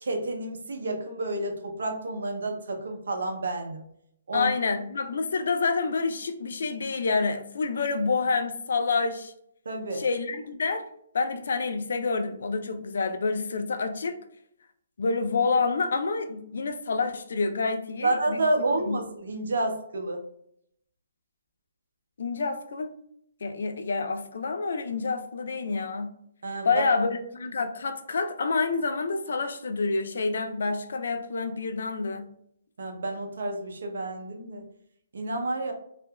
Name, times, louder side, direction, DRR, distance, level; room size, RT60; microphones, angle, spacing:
voice 1, 0.0-3.9 4.3-4.5 9.7-10.1 18.0-20.3 26.4-26.8 32.8-34.6 35.1-35.7, right 2 dB, 75° right, 3 dB, 0.6 m, -30 dB
voice 2, 4.3-9.3 9.9-10.9 11.1-14.2 15.0-18.4 18.8-19.0 22.2-22.9 23.4-26.1 26.6-32.3, left 4 dB, 70° left, 7 dB, 0.4 m, -28 dB
2.7 x 2.5 x 2.2 m, 0.72 s
hypercardioid pair, 150°, 0 cm